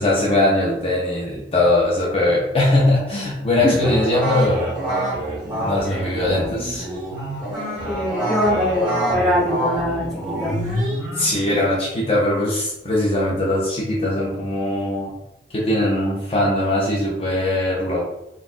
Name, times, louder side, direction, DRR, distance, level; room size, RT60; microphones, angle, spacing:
voice 1, 0.0-4.8 5.4-6.9 11.1-15.1 15.5-18.1, left 1 dB, 35° left, -5 dB, 0.7 m, -20 dB
sound 1, 3.8-11.3, right 1 dB, 25° right, 1.4 m, -26 dB
voice 2, 7.9-10.6, equal, 5° left, -7 dB, 0.9 m, -22 dB
4.0 x 2.4 x 2.6 m, 0.84 s
head